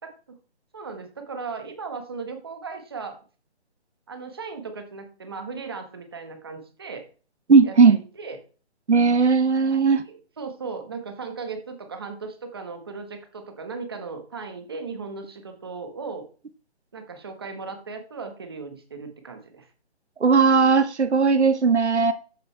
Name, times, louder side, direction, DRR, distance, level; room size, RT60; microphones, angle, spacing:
voice 1, 0.0-0.4 0.7-3.1 4.1-7.0 7.6-8.4 9.7-9.8 10.1-16.2 16.9-19.7, right 4 dB, 20° right, 6 dB, 1.5 m, -37 dB
voice 2, 7.5-8.0 8.9-10.0 20.2-22.1, right 5 dB, 85° right, 10 dB, 1.3 m, -17 dB
13.5 x 7.7 x 3.3 m, 0.37 s
hypercardioid pair, 180°, 33 cm